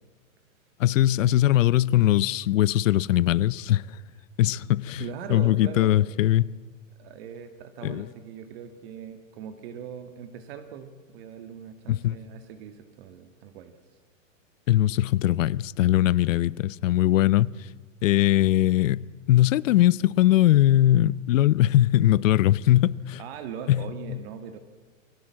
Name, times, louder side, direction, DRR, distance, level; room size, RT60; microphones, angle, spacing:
voice 1, 0.8-4.0 4.4-5.0 5.3-6.5 7.8-8.1 11.9-12.2 14.7-17.5 18.0-23.2 23.7-23.8, left 14 dB, 70° left, 0.7 m, -21 dB
voice 2, 5.0-6.0 7.0-13.7 23.2-24.6, right 8 dB, 50° right, 1.8 m, -40 dB
28.0 x 17.5 x 7.5 m
supercardioid pair, 150°, 39 cm